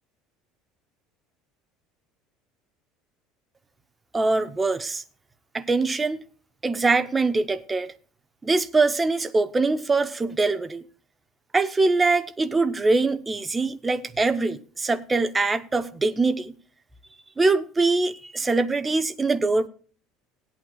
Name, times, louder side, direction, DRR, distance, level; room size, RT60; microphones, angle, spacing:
voice 1, 4.1-5.0 5.5-6.2 6.6-7.9 8.4-10.8 11.5-16.5 17.4-19.7, right 3 dB, 15° right, 0.7 m, -23 dB
18.5 x 8.7 x 2.3 m
cardioid pair, 160°, 0 cm